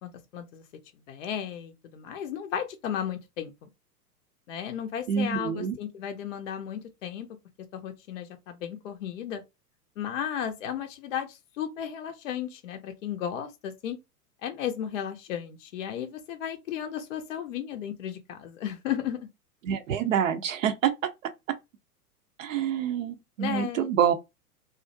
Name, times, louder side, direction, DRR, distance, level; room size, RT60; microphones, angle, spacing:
voice 1, 0.0-0.6 1.1-3.5 4.5-7.3 7.7-9.4 10.0-14.0 14.4-19.3 23.4-23.9, left 9 dB, 55° left, 0.5 m, -34 dB
voice 2, 5.1-5.7 19.6-20.9 22.4-24.1, right 8 dB, 55° right, 0.5 m, -26 dB
2.4 x 2.0 x 2.5 m
figure-of-eight pair, 105°, 47 cm